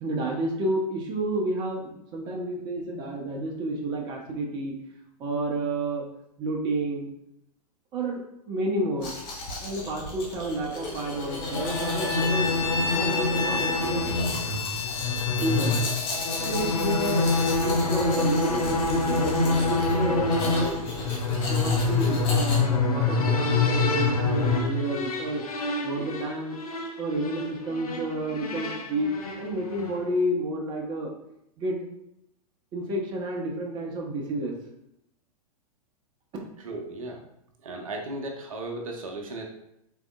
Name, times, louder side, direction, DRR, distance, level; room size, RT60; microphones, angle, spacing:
voice 1, 0.0-4.8 5.2-6.1 6.4-7.1 7.9-8.2 8.5-9.1 9.6-12.5 12.9-14.5 15.4-15.7 16.4-20.7 21.5-26.6 27.0-29.1 29.4-31.1 31.6-31.8 32.7-34.5, right 1 dB, 25° right, 0 dB, 0.7 m, -30 dB
Domestic sounds home sounds, 9.0-22.6, left 2 dB, 35° left, 1.1 m, -36 dB
sound 1, 11.0-30.1, left 3 dB, 65° left, 0.7 m, -26 dB
Bowed string instrument, 11.6-17.6, left 5 dB, 20° left, 0.3 m, -32 dB
voice 2, 36.6-37.2 37.6-39.4, right 2 dB, 60° right, 1 dB, 0.7 m, -35 dB
3.7 x 3.4 x 2.4 m, 0.79 s
figure-of-eight pair, 105°, 20 cm